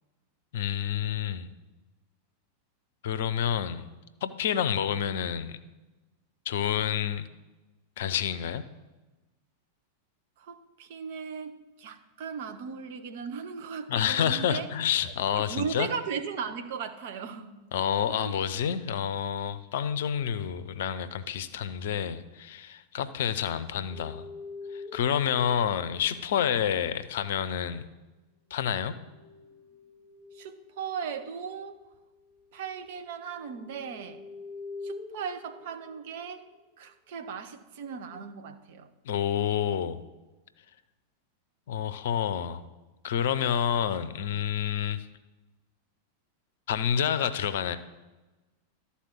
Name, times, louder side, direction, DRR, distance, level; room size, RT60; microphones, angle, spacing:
voice 1, 0.5-1.5 3.0-3.9 4.2-5.6 6.5-7.3 8.0-8.6 13.9-15.9 17.7-24.3 24.7-27.8 28.5-28.9 39.1-40.0 41.7-42.6 43.0-45.1 46.7-47.8, left 9 dB, 55° left, 0.5 m, -28 dB
voice 2, 10.4-14.7 15.0-17.6 18.1-18.3 30.3-31.8 32.5-34.2 34.8-36.5 36.8-38.9, right 6 dB, 50° right, 0.8 m, -37 dB
sound 1, 23.9-26.7 28.7-36.4 37.8-38.2, left 3 dB, 15° right, 3.1 m, -46 dB
12.5 x 4.3 x 7.1 m
figure-of-eight pair, 90°, 0 cm